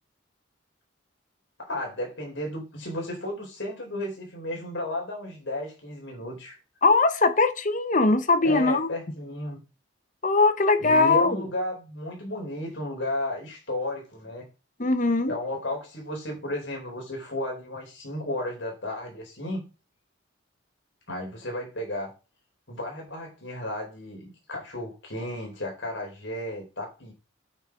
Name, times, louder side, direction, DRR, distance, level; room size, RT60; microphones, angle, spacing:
voice 1, 1.6-6.6 8.4-9.6 10.8-14.5 15.3-19.7 21.1-22.1 22.7-27.1, left 1 dB, 65° left, 4.8 m, -33 dB
voice 2, 6.8-8.9 10.2-11.4 14.8-15.3, left 3 dB, 40° left, 1.0 m, -21 dB
9.0 x 6.6 x 5.0 m
head